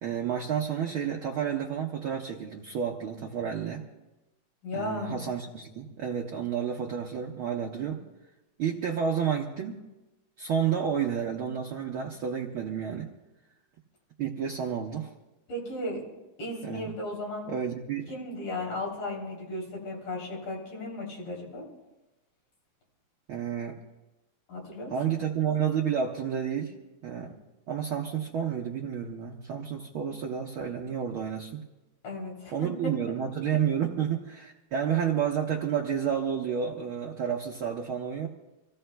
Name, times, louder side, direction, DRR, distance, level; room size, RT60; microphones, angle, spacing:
voice 1, 0.0-3.9 4.7-8.0 8.6-9.8 10.4-13.1 14.2-15.1 16.7-16.9 17.5-18.1 23.3-23.8 24.9-26.7 27.0-27.3 27.7-31.6 32.5-38.3, right 8 dB, 70° right, -1 dB, 1.3 m, -30 dB
voice 2, 4.6-5.2 15.5-16.0 16.4-17.5 18.1-21.6 24.5-25.2 32.0-32.6, left 2 dB, 75° left, -4 dB, 5.1 m, -35 dB
27.5 x 15.5 x 2.3 m, 1.0 s
omnidirectional pair, 3.9 m